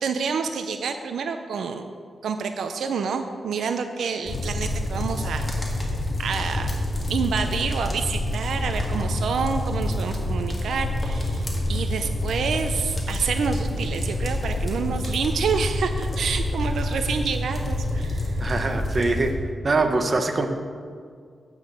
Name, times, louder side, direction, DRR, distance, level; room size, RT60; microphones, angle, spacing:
voice 1, 0.0-1.8 2.2-5.5 5.8-5.9 6.2-6.8 7.1-18.4, right 6 dB, 90° right, 7 dB, 0.5 m, -28 dB
sound 1, 4.3-19.3, left 1 dB, 25° left, 2.1 m, -27 dB
voice 2, 18.4-19.3 19.6-20.5, right 3 dB, 35° right, 5 dB, 1.0 m, -23 dB
9.0 x 6.3 x 7.6 m, 2.1 s
wide cardioid pair, 115°, 0 cm